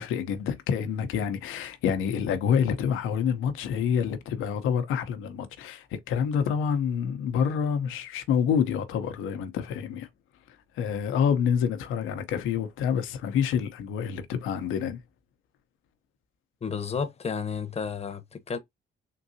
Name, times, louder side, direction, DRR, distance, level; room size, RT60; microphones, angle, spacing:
voice 1, 0.0-10.1 10.7-15.0, left 7 dB, 85° left, 0.8 m, -27 dB
voice 2, 16.6-18.6, left 6 dB, 30° left, 0.8 m, -32 dB
3.8 x 2.6 x 2.7 m
cardioid pair, 90°, 20 cm